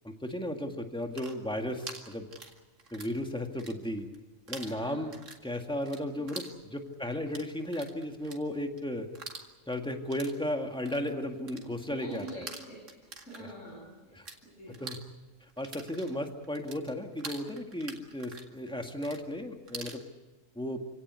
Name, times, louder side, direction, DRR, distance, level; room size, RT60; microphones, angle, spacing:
voice 1, 0.0-2.3 2.9-4.1 4.5-5.1 5.4-9.1 9.7-12.5 13.4-13.5 14.1-14.3 14.8-15.0 15.6-20.0 20.6-20.8, left 1 dB, 5° left, 4 dB, 2.0 m, -35 dB
sound 1, 0.9-3.2 3.5-4.2 4.5-14.4 14.7-20.0, right 3 dB, 75° right, 2.5 m, -46 dB
voice 2, 4.6-5.0 6.2-6.3 11.5-14.8, right 2 dB, 75° left, -4 dB, 8.2 m, -46 dB
27.5 x 17.5 x 8.3 m, 1.2 s
omnidirectional pair, 1.3 m